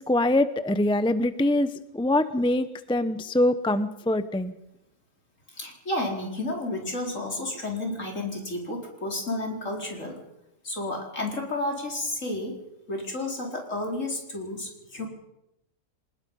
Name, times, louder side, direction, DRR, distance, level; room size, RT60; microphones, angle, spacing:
voice 1, 0.0-4.5, left 1 dB, 5° left, 12 dB, 0.6 m, -24 dB
voice 2, 5.5-10.2 10.6-12.6 12.9-15.1, left 2 dB, 55° left, 0 dB, 4.8 m, -31 dB
26.0 x 19.5 x 5.5 m, 0.86 s
omnidirectional pair, 1.6 m